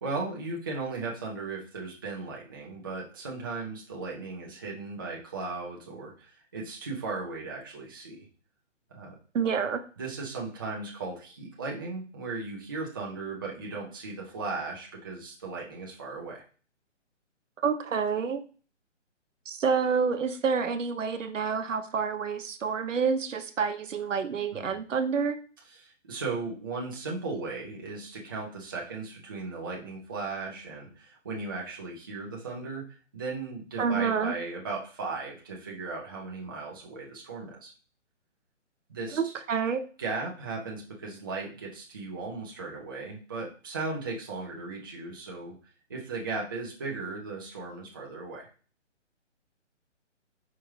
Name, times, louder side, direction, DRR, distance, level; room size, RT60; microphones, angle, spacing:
voice 1, 0.0-8.3 8.9-9.2 10.0-16.4 24.5-24.8 25.6-32.8 33.1-37.7 38.9-39.3 40.0-45.6 45.9-48.5, right 3 dB, 20° right, -3 dB, 0.5 m, -36 dB
voice 2, 9.3-9.8 17.6-18.4 19.5-25.4 33.8-34.3 39.1-39.8, right 6 dB, 85° right, 8 dB, 0.8 m, -28 dB
4.8 x 3.5 x 3.1 m, 0.39 s
hypercardioid pair, 160°, 37 cm